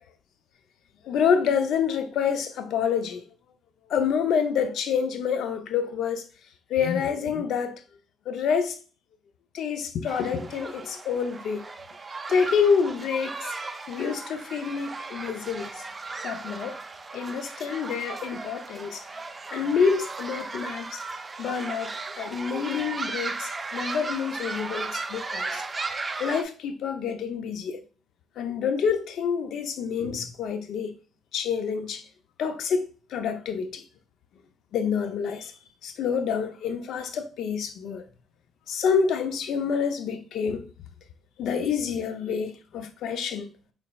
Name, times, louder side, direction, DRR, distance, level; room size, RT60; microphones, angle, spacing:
voice 1, 1.0-3.3 3.9-6.3 6.7-7.8 8.3-8.8 9.5-11.7 12.3-13.5 13.9-15.8 16.2-16.8 17.1-19.0 19.5-21.0 21.4-21.9 22.2-25.6 26.2-27.8 28.4-30.9 31.3-32.0 32.4-33.9 34.7-35.5 35.8-38.0 38.7-40.7 41.4-43.5, left 6 dB, 75° left, 0.5 m, -27 dB
sound 1, 10.1-26.4, right 3 dB, 30° right, 0.4 m, -36 dB
5.0 x 3.2 x 2.2 m
cardioid pair, 90°, 0 cm